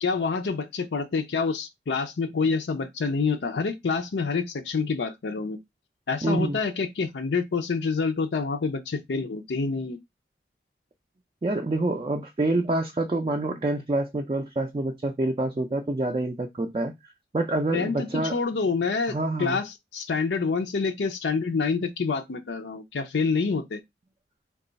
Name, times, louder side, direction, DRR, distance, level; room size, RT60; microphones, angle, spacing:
voice 1, 0.0-5.6 6.1-10.0 17.7-19.1 19.4-23.8, left 4 dB, 80° left, 0.5 m, -27 dB
voice 2, 6.2-6.6 11.4-16.9 17.3-18.4 19.1-19.6, right 2 dB, 30° right, 0.3 m, -27 dB
3.0 x 2.3 x 3.9 m
head